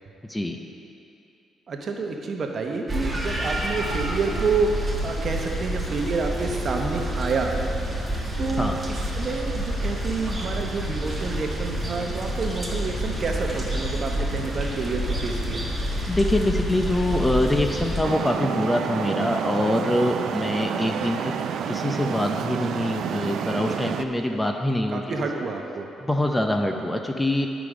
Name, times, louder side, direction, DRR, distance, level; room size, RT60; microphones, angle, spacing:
voice 1, 1.7-7.6 8.4-15.6 24.3-24.4 24.9-25.9, right 4 dB, 50° right, 2 dB, 0.9 m, -28 dB
Kuba in a cat fight outside in the rain and thunder, 2.9-18.0, equal, 15° right, 1.4 m, -28 dB
voice 2, 16.1-21.3 21.7-25.0 26.1-27.5, left 1 dB, 10° left, 4 dB, 0.6 m, -24 dB
Traffic noise roadway noise, 18.0-24.0, right 7 dB, 70° right, 0.4 m, -29 dB
11.0 x 5.1 x 5.0 m, 2.8 s
cardioid pair, 90°, 0 cm